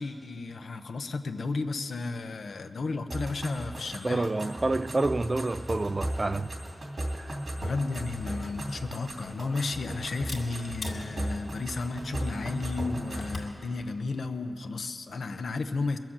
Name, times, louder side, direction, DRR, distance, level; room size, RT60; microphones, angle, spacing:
voice 1, 0.0-4.3 7.6-16.0, left 3 dB, 85° left, 0.6 m, -33 dB
sound 1, 3.1-13.4, right 1 dB, 75° right, 2.8 m, -36 dB
voice 2, 4.0-6.5 7.1-7.4, right 2 dB, 40° right, 0.3 m, -28 dB
Camera, 8.1-13.6, left 2 dB, 70° left, 2.0 m, -45 dB
22.0 x 7.4 x 7.2 m
cardioid pair, 60°, 0 cm